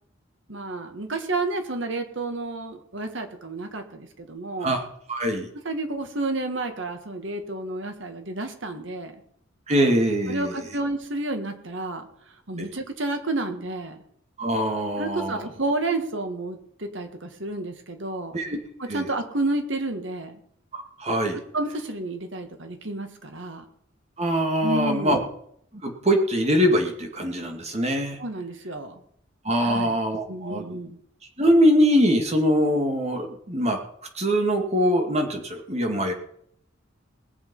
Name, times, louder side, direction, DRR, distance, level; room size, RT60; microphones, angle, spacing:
voice 1, 0.5-4.8 5.6-9.1 10.3-12.1 12.5-14.0 15.0-18.4 18.8-20.4 21.5-23.7 24.6-25.3 28.2-29.0 29.6-29.9 30.3-31.0, right 2 dB, 65° right, 6 dB, 1.9 m, -30 dB
voice 2, 5.1-5.5 9.7-10.5 12.6-12.7 14.4-15.5 18.3-18.6 18.9-19.0 20.7-21.4 24.2-25.2 25.8-28.2 29.4-30.7 31.4-33.8 34.2-36.1, equal, 35° right, 3 dB, 2.4 m, -23 dB
20.0 x 7.4 x 5.6 m, 0.68 s
head